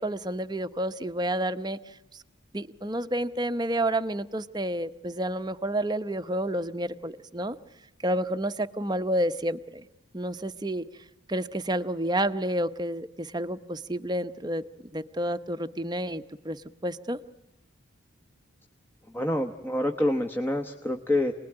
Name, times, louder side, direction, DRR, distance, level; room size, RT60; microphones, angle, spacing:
voice 1, 0.0-2.2 2.5-7.6 8.0-9.8 10.1-10.9 11.3-14.6 14.9-17.2, right 1 dB, 20° right, 9 dB, 0.9 m, -30 dB
voice 2, 19.1-21.3, left 1 dB, 10° left, 3 dB, 1.1 m, -27 dB
29.0 x 20.0 x 9.9 m, 0.93 s
head